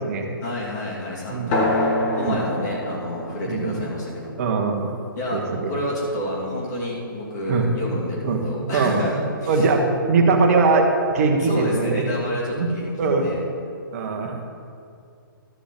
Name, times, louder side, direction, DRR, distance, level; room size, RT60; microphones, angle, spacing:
voice 1, 0.4-1.9 2.2-4.3 5.2-9.7 11.4-13.4, left 1 dB, 50° left, -6 dB, 2.7 m, -29 dB
sound 1, 1.5-6.5, left 1 dB, 35° left, 1.6 m, -28 dB
voice 2, 3.5-3.8 4.4-4.9 5.3-5.7 7.5-7.7 8.2-8.4 8.7-9.0 9.5-10.9 11.1-12.0 12.5-12.7 13.0-13.3 13.9-14.3, right 4 dB, 40° right, 3 dB, 1.2 m, -21 dB
12.5 x 8.3 x 3.8 m, 2.4 s
figure-of-eight pair, 125°, 12 cm